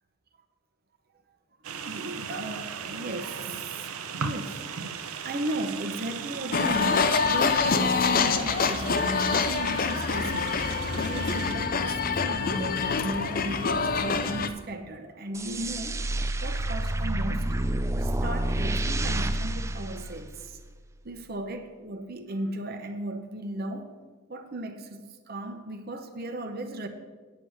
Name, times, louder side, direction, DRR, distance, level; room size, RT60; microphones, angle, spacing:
sound 1, 1.6-11.5, right 6 dB, 85° right, 0.7 m, -37 dB
voice 1, 1.8-4.7 5.2-10.6 11.1-16.0 16.4-17.5 17.9-20.6 21.0-23.9 24.3-26.9, right 1 dB, 45° right, 0.8 m, -36 dB
sound 2, 6.5-14.5, left 5 dB, 40° left, 0.5 m, -26 dB
sound 3, 15.3-20.7, right 1 dB, 15° right, 0.3 m, -29 dB
9.2 x 8.2 x 6.3 m
head